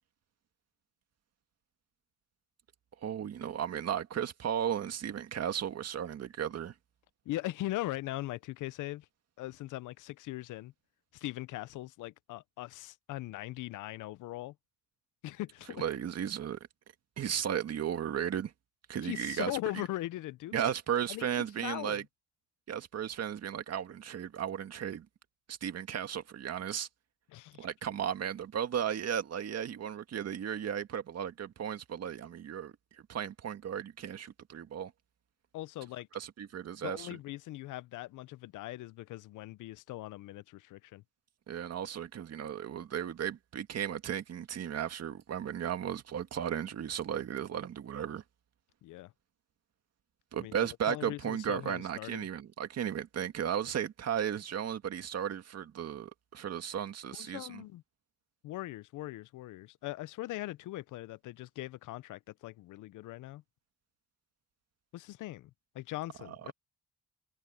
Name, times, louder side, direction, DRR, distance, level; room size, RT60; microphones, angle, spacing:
voice 1, 3.0-6.7 15.8-16.6 17.2-18.5 18.9-19.5 20.5-22.0 22.7-25.1 25.5-26.9 27.6-32.7 33.1-34.9 36.1-37.1 41.5-48.2 50.3-57.6 66.3-66.5, right 9 dB, 55° right, 1.9 m, -35 dB
voice 2, 7.3-9.1 9.4-10.7 11.1-14.5 15.2-15.8 19.0-20.7 21.1-22.0 27.3-27.7 35.5-36.1 36.8-41.0 48.8-49.1 50.4-52.3 57.1-57.8 58.4-63.4 64.9-66.5, left 17 dB, 80° left, 0.7 m, -40 dB
cardioid pair, 90°, 30 cm